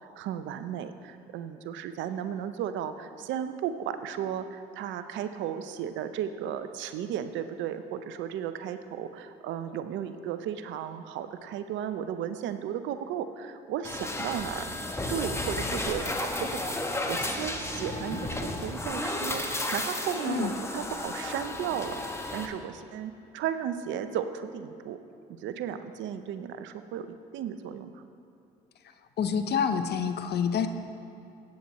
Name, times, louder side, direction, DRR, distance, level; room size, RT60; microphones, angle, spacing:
voice 1, 0.0-14.7 15.1-16.7 17.1-25.0 25.3-28.0, right 9 dB, 65° right, 10 dB, 0.7 m, -35 dB
sound 1, 13.8-22.5, left 1 dB, 15° left, 1.2 m, -33 dB
voice 2, 29.2-30.7, left 7 dB, 55° left, 9 dB, 0.8 m, -27 dB
17.5 x 8.6 x 3.1 m, 2.7 s
hypercardioid pair, 65°, 20 cm